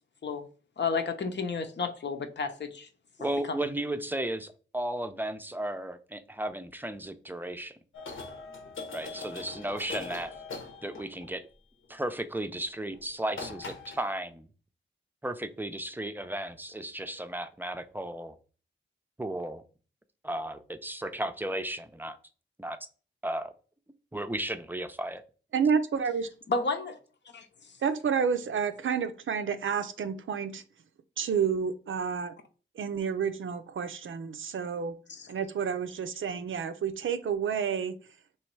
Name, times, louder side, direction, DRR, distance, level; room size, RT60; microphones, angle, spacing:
voice 1, 0.8-2.9 3.2-3.7 26.5-27.0 27.3-27.5 35.1-35.3, left 4 dB, 65° left, 0.7 m, -32 dB
voice 2, 3.2-7.8 8.9-10.3 10.8-11.4 11.9-14.5 15.2-18.4 19.2-19.6 20.2-22.2 22.6-22.8 23.2-23.5 24.1-25.2, right 1 dB, 10° right, 0.5 m, -34 dB
sound 1, 7.9-11.4 12.9-13.0 13.3-14.1, left 3 dB, 85° left, 1.1 m, -41 dB
voice 3, 25.5-26.3 27.8-30.6 31.2-32.3 32.8-34.9 35.3-38.0, right 6 dB, 80° right, 0.5 m, -30 dB
3.1 x 3.1 x 4.5 m
wide cardioid pair, 70°, 20 cm